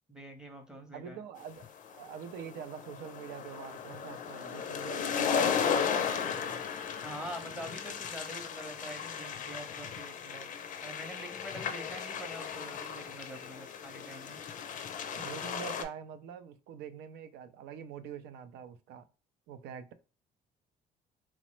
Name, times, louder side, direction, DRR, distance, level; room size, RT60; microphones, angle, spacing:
voice 1, 0.1-1.2 7.0-10.5 10.8-14.4, equal, 5° right, 0.7 m, -45 dB
voice 2, 0.9-6.6 15.1-19.1 19.5-19.9, right 8 dB, 80° right, 0.4 m, -45 dB
sound 1, 1.6-15.8, left 7 dB, 50° left, 0.4 m, -35 dB
2.9 x 2.0 x 3.0 m
cardioid pair, 110°, 17 cm